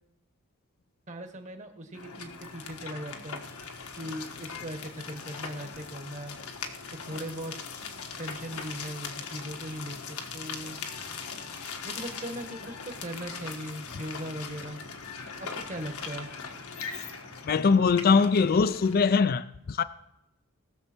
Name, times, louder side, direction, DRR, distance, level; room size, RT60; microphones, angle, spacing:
voice 1, 1.1-3.4 4.0-6.4 7.0-7.5 8.2-10.8 11.8-14.8 15.4-16.3, equal, 35° right, 1.4 m, -39 dB
sound 1, 1.9-19.2, left 5 dB, 85° left, 1.4 m, -40 dB
voice 2, 17.4-19.8, left 5 dB, 45° left, 0.4 m, -22 dB
19.5 x 6.9 x 4.4 m
head